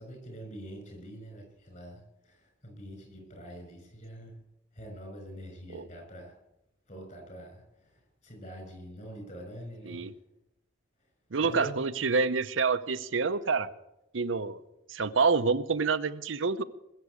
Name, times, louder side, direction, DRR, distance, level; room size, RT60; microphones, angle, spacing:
voice 1, 0.0-4.4 4.7-6.4 6.9-10.1 11.4-11.7, right 1 dB, 40° left, 2 dB, 6.3 m, -45 dB
voice 2, 11.3-13.7 14.1-14.6 14.9-16.6, right 4 dB, 80° right, 11 dB, 0.7 m, -27 dB
20.5 x 7.5 x 8.4 m, 0.89 s
head